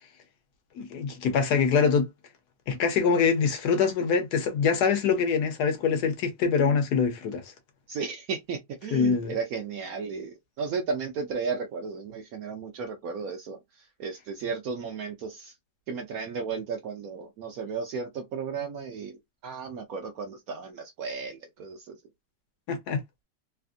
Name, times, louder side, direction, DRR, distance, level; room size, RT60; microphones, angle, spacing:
voice 1, 0.8-2.1 2.7-7.5 8.9-9.3 22.7-23.0, left 6 dB, 70° left, 1.2 m, -24 dB
voice 2, 7.9-13.6 14.0-15.5 15.9-19.2 19.4-22.0, right 5 dB, 70° right, 0.9 m, -34 dB
3.3 x 2.4 x 2.4 m
omnidirectional pair, 2.0 m